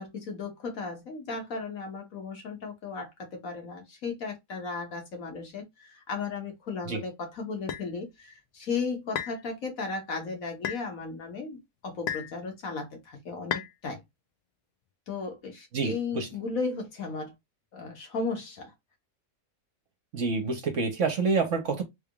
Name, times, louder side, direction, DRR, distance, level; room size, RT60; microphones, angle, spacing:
voice 1, 0.0-14.0 15.1-17.3 17.7-18.7, left 4 dB, 60° left, 1.5 m, -35 dB
sound 1, 7.7-7.9 9.2-9.4 10.6-10.9 12.1-12.4 13.5-13.7, left 9 dB, 90° left, 1.2 m, -32 dB
voice 2, 15.7-16.3 20.1-21.8, right 4 dB, 55° right, 1.1 m, -27 dB
3.6 x 3.4 x 2.2 m
omnidirectional pair, 1.7 m